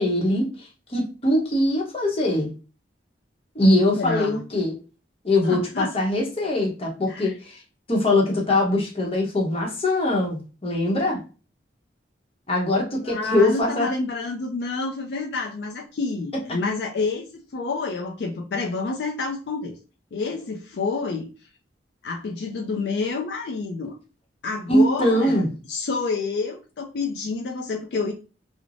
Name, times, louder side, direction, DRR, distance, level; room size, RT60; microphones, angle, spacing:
voice 1, 0.0-2.5 3.5-4.7 5.2-7.6 7.9-11.2 12.5-13.9 24.7-25.5, left 1 dB, 35° left, -1 dB, 0.8 m, -22 dB
voice 2, 3.9-4.4 5.4-5.9 7.1-7.3 13.0-19.8 20.1-21.3 22.0-24.0 24.4-28.1, left 4 dB, 65° left, 1 dB, 0.4 m, -28 dB
3.1 x 2.0 x 2.4 m, 0.34 s
head